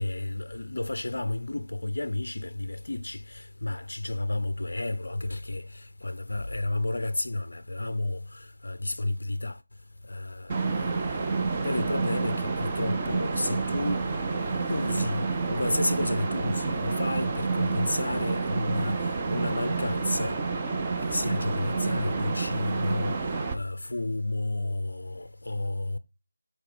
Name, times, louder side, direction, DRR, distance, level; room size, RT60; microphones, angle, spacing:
voice 1, 0.0-9.6 10.1-14.0 14.7-20.4 21.1-23.2 23.5-26.0, left 2 dB, 50° left, 0.4 m, -31 dB
sound 1, 10.5-23.6, right 4 dB, 15° right, 0.5 m, -29 dB
8.8 x 4.3 x 3.3 m
figure-of-eight pair, 165°, 0 cm